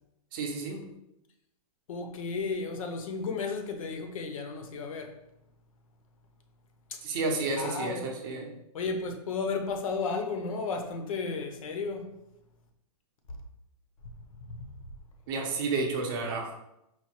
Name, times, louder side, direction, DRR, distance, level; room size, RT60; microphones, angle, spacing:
voice 1, 0.3-0.8 7.0-8.5 15.3-16.5, right 3 dB, 35° right, 0.6 m, -31 dB
voice 2, 1.9-5.1 6.9-7.0 7.6-8.1 8.7-12.1 14.5-14.7, left 4 dB, 60° left, 0.6 m, -33 dB
4.5 x 2.2 x 2.9 m
hypercardioid pair, 160°, 20 cm